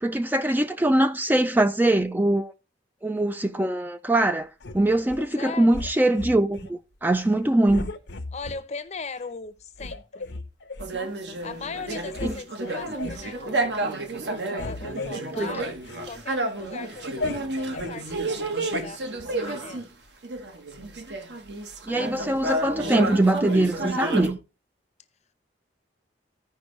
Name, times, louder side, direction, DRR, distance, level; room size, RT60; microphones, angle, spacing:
voice 1, 0.0-2.5 3.0-4.5 4.7-7.9 12.2-12.3 15.4-15.5 21.9-24.4, right 1 dB, 10° right, 0.4 m, -22 dB
sound 1, 4.6-5.3 5.7-6.7 7.1-7.3 7.7-8.6 9.2-9.3 9.8-10.9 11.5-11.6 11.9-12.4 12.6-13.3 13.7-14.0 14.2-16.1 16.4-18.0 18.7-18.9, left 2 dB, 70° left, 0.8 m, -36 dB
voice 2, 5.4-5.9 8.3-10.4 11.4-13.7 14.5-15.7 16.0-19.0 19.3-19.9, left 4 dB, 40° left, 0.7 m, -39 dB
sound 2, 10.8-19.9 20.2-24.3, right 2 dB, 70° right, 1.2 m, -31 dB
15.0 x 5.2 x 3.1 m
head